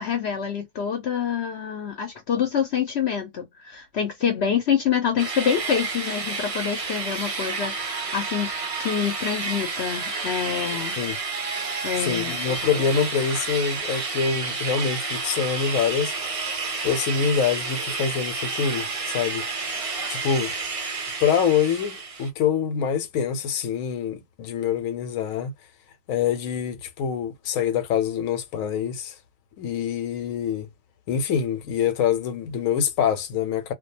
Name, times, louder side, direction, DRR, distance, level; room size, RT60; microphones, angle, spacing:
voice 1, 0.0-8.5 8.8-11.0 11.8-12.4, left 8 dB, 60° left, 0.8 m, -26 dB
sound 1, 5.2-22.3, right 4 dB, 50° right, 0.4 m, -30 dB
voice 2, 12.0-16.1 16.8-19.5 20.1-20.5 21.2-25.5 26.1-29.1 29.6-30.7 31.1-33.7, left 7 dB, 80° left, 1.0 m, -25 dB
2.4 x 2.2 x 2.6 m
omnidirectional pair, 1.4 m